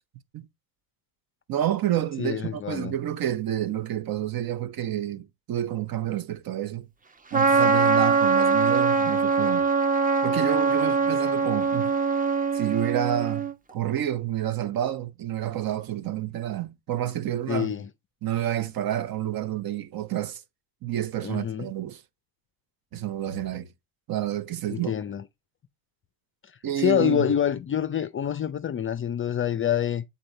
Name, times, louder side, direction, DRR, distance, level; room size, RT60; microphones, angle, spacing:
voice 1, 1.5-6.9 7.3-9.7 10.2-11.9 12.5-17.7 18.2-20.4 20.8-22.0 22.9-23.7 24.1-25.0 26.6-27.3, right 11 dB, 45° right, 1.1 m, -29 dB
voice 2, 2.2-2.9 17.5-17.9 21.2-21.7 24.7-25.2 26.8-30.0, left 9 dB, 25° left, 0.5 m, -26 dB
Trumpet, 7.3-13.5, right 5 dB, 15° right, 0.9 m, -22 dB
7.7 x 4.1 x 4.2 m
hypercardioid pair, 80°, 49 cm